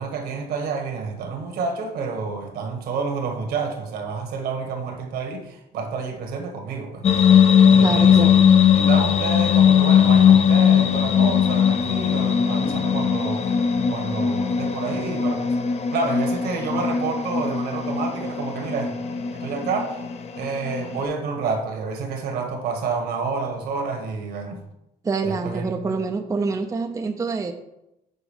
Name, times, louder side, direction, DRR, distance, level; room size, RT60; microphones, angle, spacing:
voice 1, 0.0-7.0 7.7-8.3 8.8-13.6 13.9-15.5 15.9-18.9 19.3-19.9 20.4-24.6 25.2-25.9, right 4 dB, 70° right, 3 dB, 1.5 m, -29 dB
sound 1, 7.0-21.0, left 8 dB, 40° left, 0.7 m, -19 dB
voice 2, 7.8-8.5 25.0-27.5, right 4 dB, 20° right, 5 dB, 0.5 m, -26 dB
7.1 x 4.0 x 5.4 m, 0.89 s
cardioid pair, 110°, 17 cm